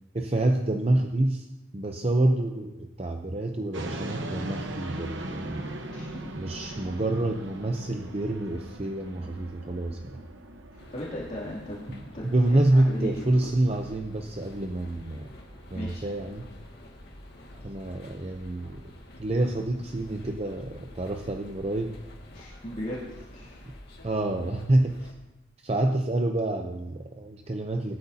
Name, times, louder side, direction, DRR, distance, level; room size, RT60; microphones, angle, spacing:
voice 1, 0.1-1.5 1.7-5.8 6.4-10.2 11.9-15.3 15.7-16.5 17.6-18.9 19.2-22.0 24.0-25.2 25.6-28.0, right 1 dB, 30° right, 4 dB, 0.6 m, -27 dB
sound 1, 3.7-20.0, right 1 dB, 65° right, 1.1 m, -41 dB
voice 2, 5.9-6.3 6.6-6.8 10.9-11.9 12.1-13.2 15.7-16.0 22.3-23.6, left 1 dB, 35° left, -7 dB, 2.7 m, -37 dB
sound 2, 10.8-25.1, left 1 dB, 50° left, 2.0 m, -48 dB
19.0 x 12.5 x 2.8 m, 1.0 s
head